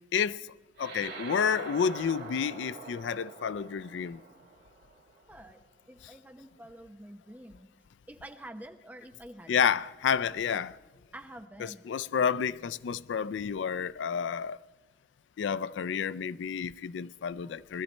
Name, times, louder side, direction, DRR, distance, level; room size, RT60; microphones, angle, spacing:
voice 1, 0.1-0.5 0.8-4.2 9.5-10.8 11.6-14.6 15.4-17.8, left 7 dB, 80° left, 0.4 m, -30 dB
sound 1, 0.8-5.5, right 3 dB, 60° right, 2.5 m, -44 dB
voice 2, 5.3-7.7 8.1-9.8 11.1-11.9, right 1 dB, 10° right, 0.8 m, -48 dB
20.0 x 13.0 x 4.3 m
head